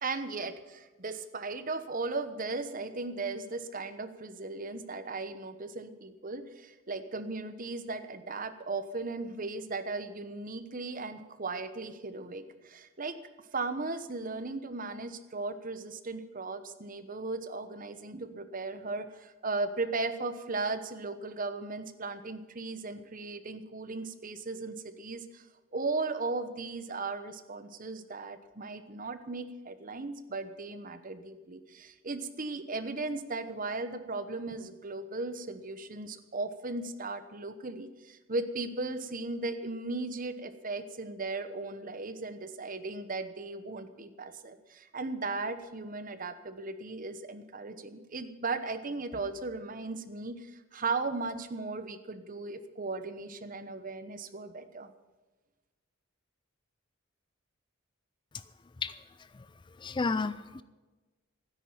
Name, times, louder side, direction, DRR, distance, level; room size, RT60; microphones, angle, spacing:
voice 1, 0.0-13.2 13.5-25.5 25.7-54.9, right 3 dB, 40° right, 11 dB, 1.0 m, -37 dB
voice 2, 59.8-60.6, left 4 dB, 20° left, 15 dB, 0.4 m, -31 dB
12.5 x 10.0 x 8.9 m, 1.2 s
head